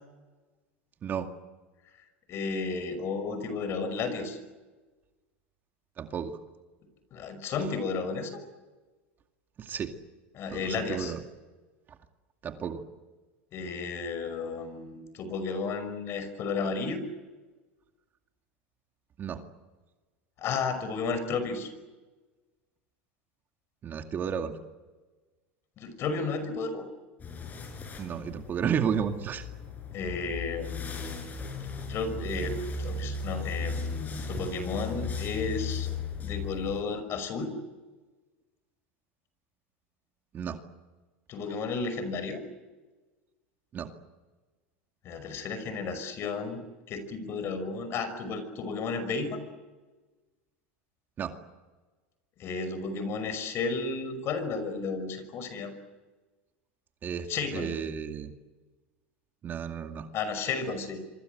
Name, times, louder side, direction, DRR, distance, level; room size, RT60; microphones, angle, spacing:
voice 1, 1.0-1.3 6.0-6.4 9.6-9.9 10.5-11.2 12.4-12.8 19.2-19.4 23.8-24.5 28.0-29.5 40.3-40.6 43.7-43.9 51.2-51.3 57.0-58.3 59.4-60.1, right 7 dB, 35° right, 5 dB, 2.2 m, -32 dB
voice 2, 2.3-4.4 7.1-8.4 10.3-11.1 13.5-17.0 20.4-21.7 25.8-26.9 29.9-31.4 31.9-35.9 36.2-37.5 41.3-42.4 45.0-46.6 46.9-49.4 52.4-55.7 57.3-57.7 60.1-61.0, left 4 dB, 45° left, 10 dB, 5.7 m, -33 dB
sound 1, 27.2-36.8, left 4 dB, 30° left, 6.3 m, -36 dB
26.0 x 24.5 x 8.1 m, 1.3 s
supercardioid pair, 110°, 6 cm